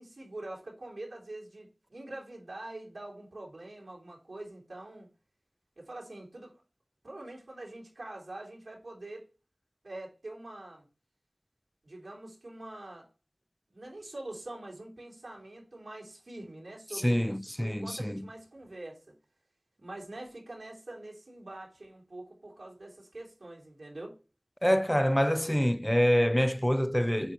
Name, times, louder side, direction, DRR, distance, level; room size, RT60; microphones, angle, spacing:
voice 1, 0.0-5.1 5.8-6.5 7.0-9.3 9.8-10.8 11.8-13.1 13.7-19.1 19.8-24.1, right 2 dB, 90° right, 3.3 m, -44 dB
voice 2, 16.9-18.3 24.6-27.3, equal, 10° left, 0.3 m, -26 dB
8.0 x 3.1 x 5.6 m
wide cardioid pair, 45°, 0 cm